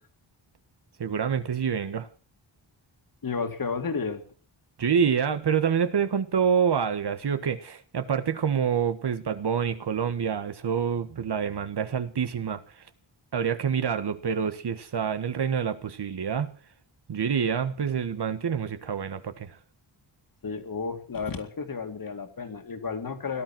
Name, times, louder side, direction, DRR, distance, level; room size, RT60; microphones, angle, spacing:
voice 1, 1.0-2.1 4.8-12.6 13.3-16.5 17.1-19.5, right 7 dB, 55° right, 1.5 m, -27 dB
voice 2, 3.2-4.2 20.4-23.4, left 5 dB, 45° left, 2.5 m, -32 dB
18.0 x 12.0 x 6.1 m
wide cardioid pair, 175°, 47 cm